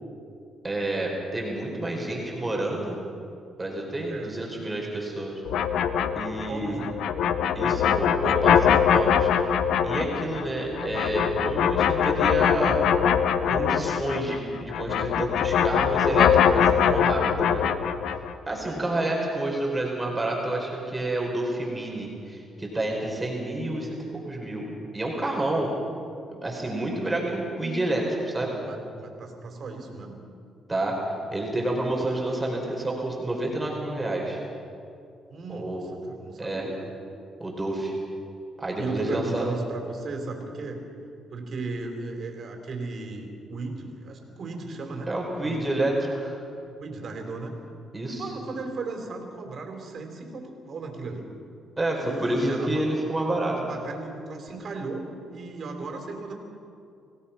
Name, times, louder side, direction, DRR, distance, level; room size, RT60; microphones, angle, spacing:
voice 1, 0.6-3.0 3.6-5.4 6.1-6.8 7.5-9.3 9.8-12.8 13.5-17.7 18.5-24.0 24.3-24.7 24.9-25.7 26.3-28.5 30.7-31.0 31.3-34.4 35.5-35.9 36.4-36.6 37.4-37.9 38.6-39.5 45.1-46.4 47.9-48.2 51.8-53.6, right 1 dB, 15° right, -1 dB, 4.3 m, -29 dB
sound 1, 5.5-14.4 14.7-18.3, left 8 dB, 80° left, 0.9 m, -22 dB
voice 2, 6.5-6.9 10.4-10.6 18.6-19.0 28.2-30.2 35.3-36.9 38.8-40.8 41.3-45.1 45.4-45.7 46.8-47.5 48.2-51.3 52.0-52.8 53.5-55.1 55.3-56.3, right 3 dB, 55° right, 3 dB, 3.9 m, -36 dB
26.5 x 17.0 x 5.8 m, 2.5 s
cardioid pair, 90°, 0 cm